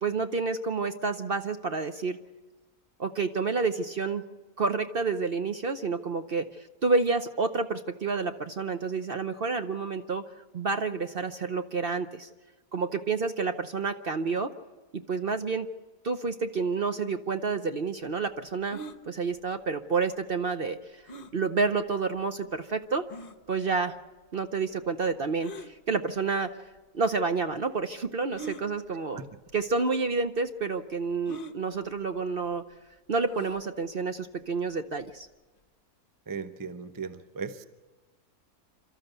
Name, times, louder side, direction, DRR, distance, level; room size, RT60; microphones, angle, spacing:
voice 1, 0.0-2.2 3.0-4.2 4.6-10.2 10.5-12.3 12.7-14.5 14.9-15.7 16.0-18.8 19.1-21.0 21.3-23.0 23.5-24.0 24.3-26.5 26.9-29.2 29.5-32.6 33.1-35.3, right 4 dB, 45° right, 8 dB, 0.8 m, -29 dB
sound 1, 18.7-19.0 21.1-21.4 22.1-22.2 23.1-23.4 25.4-25.7 26.8-26.9 28.3-28.6 29.6-29.7 30.0-30.1 31.3-31.6 33.3-33.6, right 2 dB, 40° left, 1.0 m, -41 dB
voice 2, 36.3-37.6, right 5 dB, 20° right, 11 dB, 0.5 m, -37 dB
28.5 x 13.0 x 8.1 m, 1.2 s
omnidirectional pair, 1.7 m